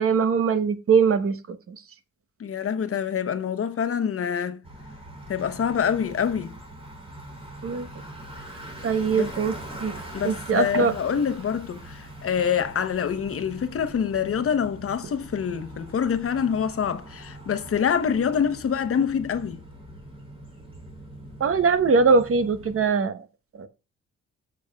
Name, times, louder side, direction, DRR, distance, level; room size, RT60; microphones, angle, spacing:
voice 1, 0.0-1.8 7.6-7.9 8.8-9.5 9.8-10.0 10.2-10.9 21.4-23.2 23.6-23.7, right 5 dB, 50° right, 1.0 m, -21 dB
voice 2, 2.4-4.6 5.3-6.6 9.1-9.3 10.1-19.6, left 7 dB, 50° left, 1.0 m, -26 dB
Bicycle, 4.6-22.9, right 1 dB, 20° right, 3.5 m, -42 dB
17.0 x 7.1 x 2.3 m
cardioid pair, 95°, 29 cm